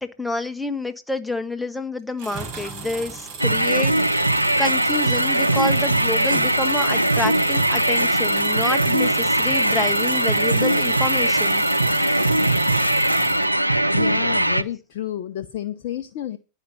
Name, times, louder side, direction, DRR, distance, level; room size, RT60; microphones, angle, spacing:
voice 1, 0.0-4.2 4.6-11.6, left 2 dB, 5° left, 7 dB, 1.4 m, -28 dB
sound 1, 2.2-13.5, right 5 dB, 40° right, 4.3 m, -36 dB
sound 2, 3.4-14.6, right 1 dB, 85° right, 0.6 m, -20 dB
Stream, 4.1-12.9, right 5 dB, 65° right, 1.7 m, -41 dB
voice 2, 13.9-16.4, left 12 dB, 50° left, 10 dB, 0.7 m, -30 dB
11.0 x 5.5 x 7.3 m, 0.31 s
figure-of-eight pair, 90°, 0 cm